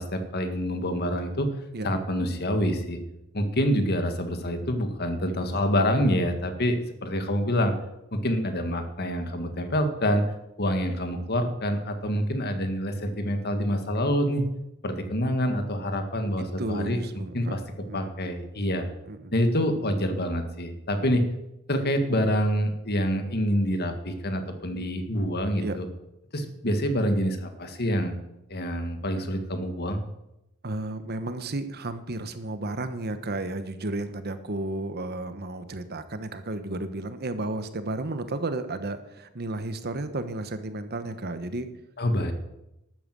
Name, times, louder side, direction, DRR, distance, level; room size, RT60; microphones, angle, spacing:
voice 1, 0.0-1.5 1.8-3.0 3.3-7.7 8.1-10.2 10.6-14.5 14.8-17.0 17.3-17.6 17.9-18.8 19.3-21.2 21.7-25.9 26.3-28.1 28.5-30.0 42.0-42.3, equal, 50° left, 7 dB, 1.9 m, -26 dB
voice 2, 16.4-17.6 17.9-18.1 19.1-19.3 25.6-25.8 30.6-41.7, right 2 dB, 50° right, 10 dB, 1.1 m, -33 dB
12.5 x 9.1 x 7.7 m, 0.88 s
head